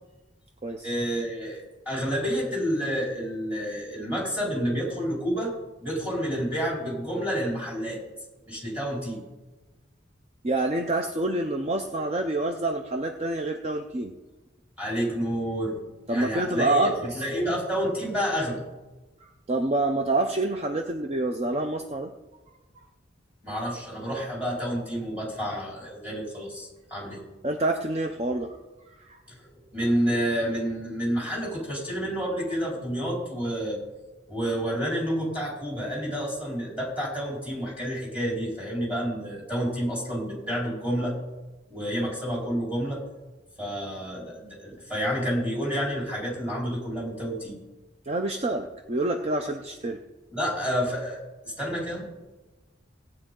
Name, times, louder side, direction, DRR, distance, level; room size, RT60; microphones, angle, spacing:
voice 1, 0.8-5.5 5.8-8.0 8.5-9.2 14.8-15.7 16.1-18.6 23.4-27.2 29.3-33.8 34.3-41.1 41.7-43.0 43.6-47.6 50.3-52.1, equal, 5° right, -5 dB, 4.5 m, -29 dB
voice 2, 10.4-14.1 16.1-17.2 19.5-22.1 27.4-28.6 28.9-29.2 48.1-50.0, right 2 dB, 35° right, 5 dB, 0.6 m, -27 dB
17.5 x 8.9 x 3.8 m, 1.2 s
head